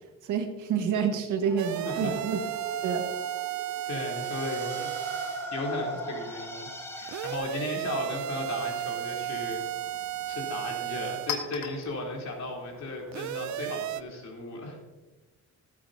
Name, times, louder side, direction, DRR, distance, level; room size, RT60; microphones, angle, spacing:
voice 1, 0.2-2.4 2.8-3.0, right 7 dB, 85° right, 5 dB, 1.6 m, -28 dB
sound 1, 1.4-7.4, equal, 10° left, 2.2 m, -40 dB
sound 2, 1.6-5.5 7.1-11.4 13.1-14.0, right 13 dB, 70° right, 0.5 m, -34 dB
voice 2, 1.8-2.2 3.8-4.9 5.5-6.7 7.0-9.6 10.3-14.8, left 2 dB, 60° left, -1 dB, 3.8 m, -35 dB
Chink clink, 8.4-13.9, left 7 dB, 85° left, 1.7 m, -43 dB
18.0 x 8.6 x 2.8 m, 1.2 s
cardioid pair, 90°, 30 cm